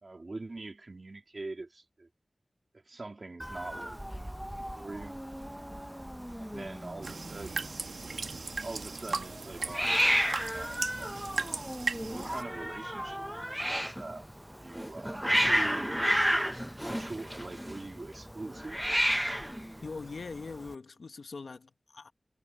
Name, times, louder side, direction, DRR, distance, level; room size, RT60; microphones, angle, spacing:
voice 1, 0.0-2.1 2.9-4.3 4.7-5.2 6.4-7.8 8.1-11.4 12.1-13.3 13.5-14.3 14.5-16.2 16.7-18.8, right 2 dB, 60° right, 2.8 m, -44 dB
Hiss, 3.4-20.7, equal, 5° right, 0.6 m, -33 dB
sound 1, 7.0-12.4, right 4 dB, 90° right, 1.6 m, -37 dB
voice 2, 19.8-22.1, left 4 dB, 90° left, 1.1 m, -42 dB
cardioid pair, 40°, 0 cm